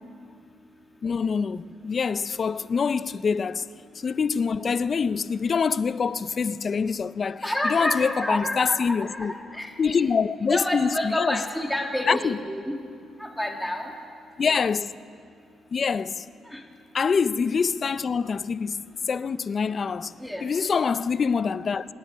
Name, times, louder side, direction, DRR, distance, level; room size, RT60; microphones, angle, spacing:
voice 1, 1.0-3.7 4.0-9.3 9.8-11.4 12.1-12.4 14.4-14.9 15.7-16.2 16.9-20.1 20.4-21.9, left 5 dB, 45° left, 0.4 m, -25 dB
voice 2, 7.4-10.0 10.5-12.7 13.2-13.9 16.5-16.6 20.2-20.4, left 1 dB, 5° left, 1.9 m, -29 dB
25.5 x 10.0 x 5.6 m
cardioid pair, 90°, 0 cm